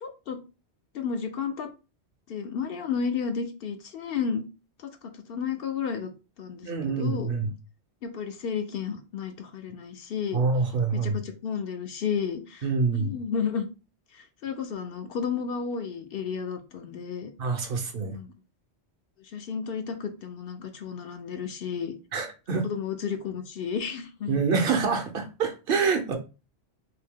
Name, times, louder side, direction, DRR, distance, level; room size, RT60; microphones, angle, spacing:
voice 1, 0.0-0.4 0.9-1.7 2.3-4.4 4.8-4.9 5.3-6.1 6.4-7.3 8.0-10.4 10.9-13.7 14.1-17.3 18.1-18.3 19.2-21.9 22.5-24.4, left 6 dB, 65° left, 7 dB, 0.7 m, -32 dB
voice 2, 6.6-7.5 10.3-11.2 12.6-13.1 17.4-18.2 22.1-22.6 24.3-26.2, right 4 dB, 60° right, 5 dB, 0.8 m, -26 dB
2.8 x 2.7 x 3.5 m, 0.31 s
omnidirectional pair, 1.1 m